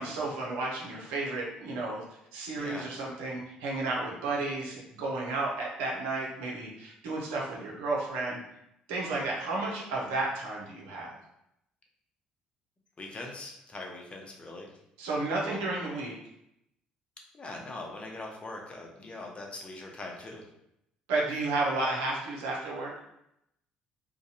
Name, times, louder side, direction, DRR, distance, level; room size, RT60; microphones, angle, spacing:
voice 1, 0.0-2.0 2.3-8.4 8.9-11.1 15.0-16.2 21.1-22.9, right 2 dB, 75° right, -3 dB, 0.7 m, -32 dB
voice 2, 2.6-2.9 13.0-14.7 15.5-15.6 17.3-20.4, left 2 dB, 30° left, 0 dB, 0.7 m, -41 dB
2.6 x 2.2 x 2.7 m, 0.79 s
hypercardioid pair, 55°, 4 cm